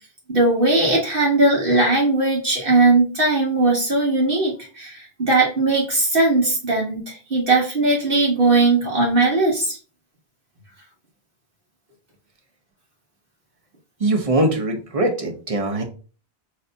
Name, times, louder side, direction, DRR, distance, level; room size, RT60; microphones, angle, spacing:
voice 1, 0.3-9.8, right 2 dB, 60° right, -3 dB, 1.4 m, -19 dB
voice 2, 14.0-15.8, right 1 dB, 40° right, 3 dB, 0.7 m, -21 dB
6.2 x 2.5 x 2.6 m, 0.37 s
omnidirectional pair, 1.1 m